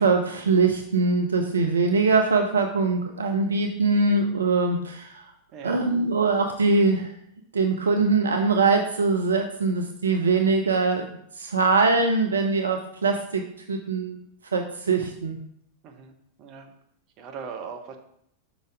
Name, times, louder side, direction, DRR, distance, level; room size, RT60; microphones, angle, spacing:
voice 1, 0.0-5.2 5.6-7.1 7.5-11.1 11.4-13.4 13.7-14.2 14.5-15.4, right 3 dB, 70° right, 5 dB, 0.5 m, -22 dB
voice 2, 5.5-5.8 15.8-16.1 16.4-16.7 17.2-18.0, right 6 dB, 35° right, 5 dB, 0.9 m, -39 dB
5.2 x 3.9 x 4.8 m, 0.71 s
figure-of-eight pair, 90°, 0 cm